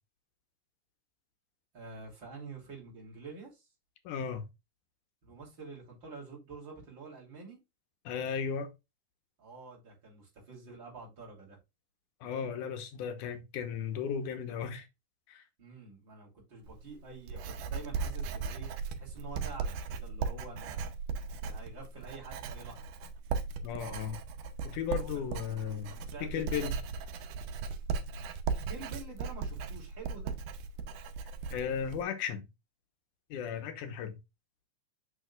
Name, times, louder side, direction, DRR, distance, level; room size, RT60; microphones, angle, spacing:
voice 1, 1.7-3.7 5.2-7.6 9.4-11.6 15.6-18.7 19.0-20.9 21.4-22.9 24.9-25.3 25.9-26.6 28.7-30.4, right 4 dB, 40° right, 3.4 m, -48 dB
voice 2, 4.0-4.5 8.1-8.7 12.2-14.9 15.3-15.4 23.6-24.2 24.6-26.8 31.5-32.5 33.3-34.2, left 7 dB, 90° left, 2.5 m, -35 dB
Writing, 16.6-32.0, right 5 dB, 90° right, 2.3 m, -37 dB
6.5 x 6.3 x 2.4 m
omnidirectional pair, 3.5 m